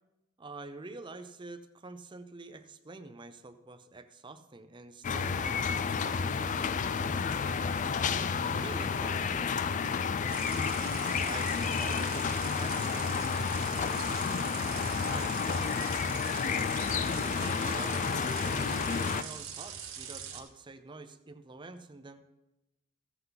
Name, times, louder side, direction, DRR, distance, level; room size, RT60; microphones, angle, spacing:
voice 1, 0.4-5.6 6.0-6.6 8.3-9.2 11.1-14.1 15.0-16.0 17.3-22.3, right 3 dB, 20° right, 9 dB, 0.6 m, -47 dB
sound 1, 5.0-19.2, left 6 dB, 35° left, 0.3 m, -31 dB
sound 2, 10.3-20.4, right 8 dB, 80° right, 1.6 m, -43 dB
sound 3, 12.3-18.2, equal, 60° left, 0.8 m, -49 dB
15.0 x 7.9 x 3.9 m, 0.94 s
head